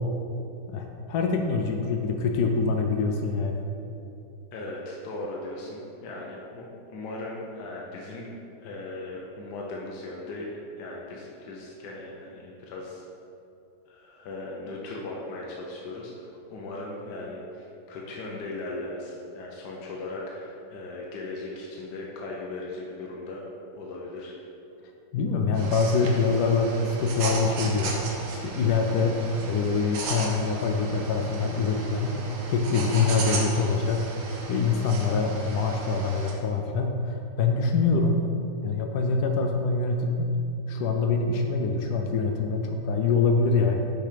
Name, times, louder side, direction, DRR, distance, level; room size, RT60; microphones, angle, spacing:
voice 1, 0.7-3.6 25.1-28.1 28.4-29.2 29.4-32.2 32.5-34.1 34.5-38.2 38.6-40.3 40.7-43.8, left 4 dB, 90° left, 3 dB, 0.8 m, -25 dB
voice 2, 4.5-8.3 8.6-10.5 10.8-13.0 13.9-23.4 23.8-24.3, left 2 dB, 65° left, -3 dB, 1.1 m, -38 dB
sound 1, 25.5-36.3, right 3 dB, 85° right, 1.7 m, -36 dB
6.5 x 3.4 x 4.9 m, 2.7 s
omnidirectional pair, 2.3 m